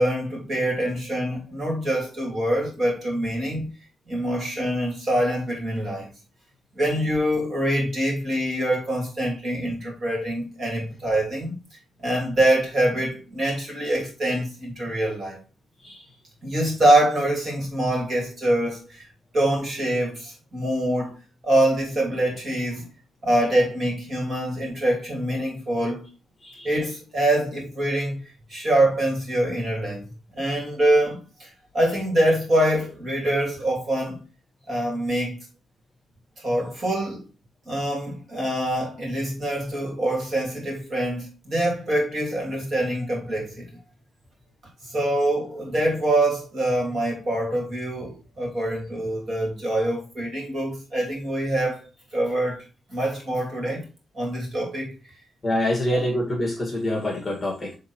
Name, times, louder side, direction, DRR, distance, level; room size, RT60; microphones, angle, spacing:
voice 1, 0.0-3.7 4.1-6.1 6.7-11.6 12.0-15.4 16.4-19.0 19.3-21.1 21.4-22.9 23.2-26.0 26.6-28.2 28.5-30.0 30.3-34.2 34.7-35.4 36.4-37.2 37.6-43.7 44.8-51.9 52.1-52.6 52.9-53.9 54.1-54.9, right 1 dB, 35° right, 2.9 m, -24 dB
voice 2, 55.4-57.7, left 1 dB, 15° left, 1.9 m, -26 dB
6.5 x 3.7 x 4.3 m
wide cardioid pair, 175°, 0 cm